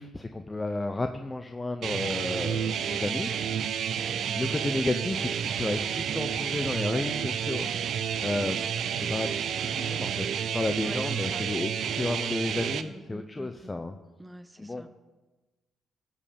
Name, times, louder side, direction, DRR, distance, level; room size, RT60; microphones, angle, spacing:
voice 1, 0.0-3.3 4.4-7.7 8.2-8.7 9.0-14.0 14.6-14.8, left 2 dB, 20° left, 6 dB, 0.6 m, -32 dB
sound 1, 1.8-12.8, right 8 dB, 70° right, 0.6 m, -30 dB
voice 2, 4.0-4.5 10.8-11.5 12.9-13.7 14.2-14.9, right 2 dB, 10° right, 10 dB, 0.8 m, -45 dB
15.0 x 5.3 x 6.8 m, 1.2 s
cardioid pair, 90°, 0 cm